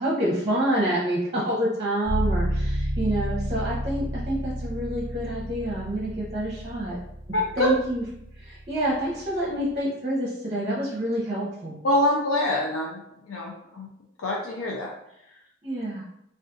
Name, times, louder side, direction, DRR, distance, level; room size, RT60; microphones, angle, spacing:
voice 1, 0.0-7.0 7.6-8.0 8.4-11.8 15.6-16.0, right 1 dB, 30° right, -5 dB, 0.7 m, -27 dB
sound 1, 2.0-9.8, equal, 10° right, 1.0 m, -31 dB
voice 2, 7.3-7.7 11.8-13.0 13.3-13.9 14.2-14.9, left 1 dB, 85° left, -3 dB, 0.5 m, -25 dB
2.4 x 2.4 x 3.7 m, 0.77 s
head